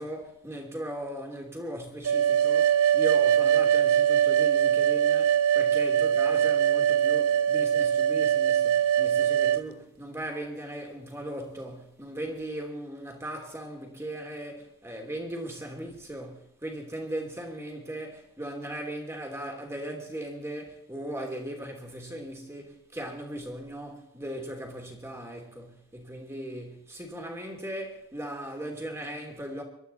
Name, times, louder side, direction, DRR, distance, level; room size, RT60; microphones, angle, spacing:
voice 1, 0.0-29.6, right 1 dB, 10° right, 3.0 m, -38 dB
sound 1, 2.0-9.6, right 9 dB, 85° right, 0.6 m, -22 dB
24.0 x 12.5 x 4.1 m
head